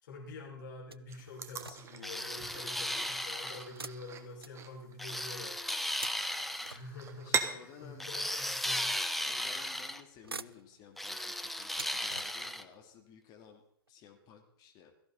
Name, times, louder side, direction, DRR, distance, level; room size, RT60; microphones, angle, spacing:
voice 1, 0.0-5.7 6.7-8.9, left 2 dB, 55° left, -1 dB, 5.7 m, -47 dB
sound 1, 0.9-2.1 3.7-5.1 5.6-7.3 8.2-8.3 9.4-9.8 10.1-12.7 13.4-13.5 13.9-14.0, right 3 dB, 90° right, 0.5 m, -49 dB
sound 2, 1.1-8.2, right 6 dB, 25° right, 1.4 m, -41 dB
sound 3, 2.0-3.7 5.0-6.8 8.0-10.0 11.0-12.6, left 1 dB, ahead, 0.8 m, -36 dB
voice 2, 2.4-3.0 7.2-8.1 9.3-13.6 13.9-14.9, left 7 dB, 35° left, 3 dB, 2.7 m, -55 dB
16.5 x 15.0 x 4.1 m, 0.68 s
figure-of-eight pair, 105°, 12 cm